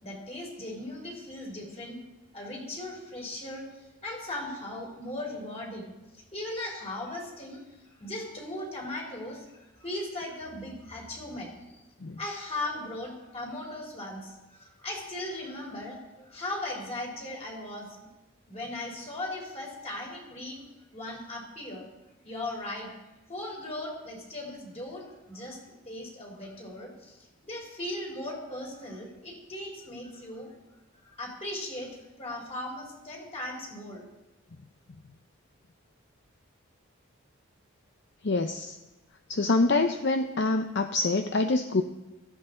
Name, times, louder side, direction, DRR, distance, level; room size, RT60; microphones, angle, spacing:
voice 1, 0.0-2.0 2.3-5.9 6.3-7.6 8.0-11.8 12.2-17.9 18.5-20.6 20.9-21.9 22.2-22.9 23.3-25.6 25.9-30.5 31.0-34.0, left 1 dB, 30° left, -1 dB, 3.7 m, -38 dB
voice 2, 38.2-38.8 39.3-41.8, left 3 dB, 55° left, 7 dB, 0.6 m, -25 dB
16.5 x 14.0 x 3.8 m, 1.0 s
head